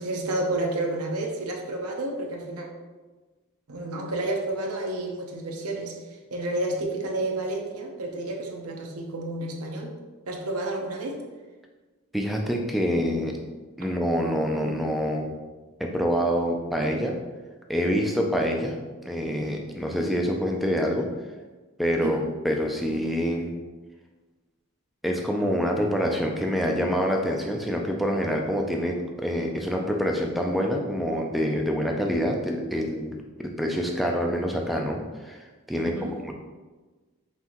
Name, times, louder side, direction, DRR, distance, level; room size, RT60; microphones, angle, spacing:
voice 1, 0.0-2.7 3.7-6.0 6.3-9.9 10.3-11.2 22.0-22.2 35.7-36.2, right 2 dB, 90° right, 1 dB, 0.7 m, -30 dB
voice 2, 12.1-13.4 13.8-15.3 15.8-17.2 17.7-18.8 19.0-21.1 21.8-23.5 25.0-36.3, equal, ahead, 1 dB, 0.3 m, -26 dB
5.5 x 2.7 x 2.9 m, 1.3 s
head